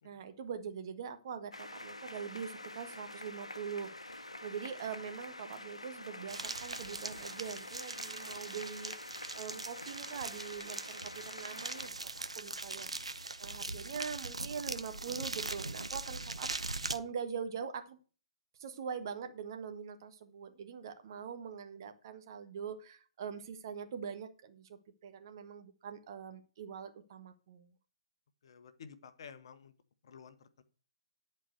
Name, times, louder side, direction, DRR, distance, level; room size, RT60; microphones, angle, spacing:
voice 1, 0.0-3.9 4.2-8.9 9.3-11.9 12.3-12.9 13.4-18.0 18.6-27.7, right 7 dB, 45° right, 7 dB, 1.4 m, -43 dB
sound 1, 1.5-11.9, left 2 dB, 80° left, 1.0 m, -47 dB
sound 2, 6.3-17.0, right 2 dB, 80° right, 0.9 m, -41 dB
voice 2, 28.4-29.7 30.0-30.6, left 6 dB, 50° left, 11 dB, 1.2 m, -53 dB
11.5 x 4.6 x 7.8 m, 0.37 s
figure-of-eight pair, 125°, 3 cm